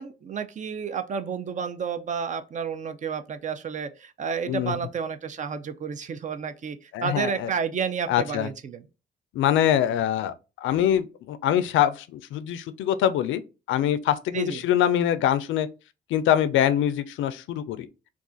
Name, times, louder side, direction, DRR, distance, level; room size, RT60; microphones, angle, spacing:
voice 1, 0.0-8.8 14.3-14.6, right 6 dB, 40° right, 0.4 m, -31 dB
voice 2, 6.9-7.5 8.1-8.5 9.3-10.3 10.6-13.4 13.7-15.7 16.1-17.9, left 10 dB, 75° left, 0.4 m, -24 dB
2.4 x 2.4 x 3.7 m
cardioid pair, 90°, 20 cm